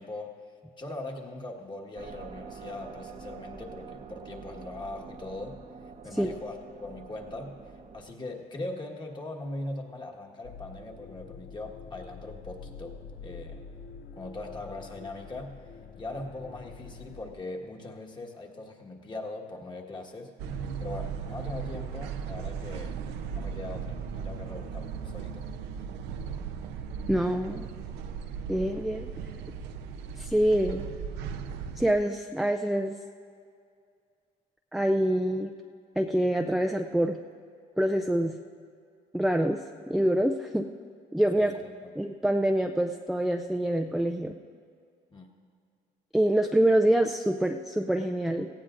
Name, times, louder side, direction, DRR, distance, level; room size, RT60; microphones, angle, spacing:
voice 1, 0.0-7.6 7.9-13.6 14.2-15.6 16.0-20.3 20.8-23.0 23.3-25.9 41.4-41.9 45.1-45.3, left 2 dB, 25° left, 2 dB, 1.5 m, -40 dB
sound 1, 1.9-8.0, right 5 dB, 45° right, 0.8 m, -46 dB
sound 2, 10.4-17.3, left 5 dB, 60° left, 0.7 m, -46 dB
sound 3, 20.4-31.9, right 6 dB, 90° right, 0.7 m, -37 dB
voice 2, 27.1-27.7 28.5-29.1 30.2-30.9 31.8-32.9 34.7-35.5 36.0-37.2 37.8-38.3 39.1-40.7 41.1-41.5 42.0-44.3 46.1-48.5, right 1 dB, ahead, 4 dB, 0.4 m, -26 dB
18.0 x 15.0 x 2.5 m, 2.3 s
cardioid pair, 110°, 17 cm